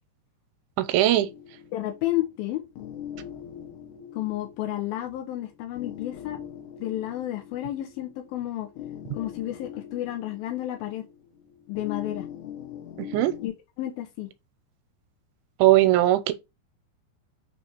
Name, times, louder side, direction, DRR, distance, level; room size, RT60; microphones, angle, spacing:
voice 1, 0.8-1.3 13.0-13.3 15.6-16.3, right 15 dB, 80° right, 3.0 m, -19 dB
sound 1, 1.1-13.5, left 9 dB, 70° left, 2.9 m, -42 dB
voice 2, 1.7-2.6 4.1-6.4 6.8-8.7 9.1-11.0 11.7-12.3 13.4-13.5 13.8-14.3, left 14 dB, 85° left, 2.1 m, -31 dB
8.9 x 3.3 x 4.3 m
omnidirectional pair, 5.5 m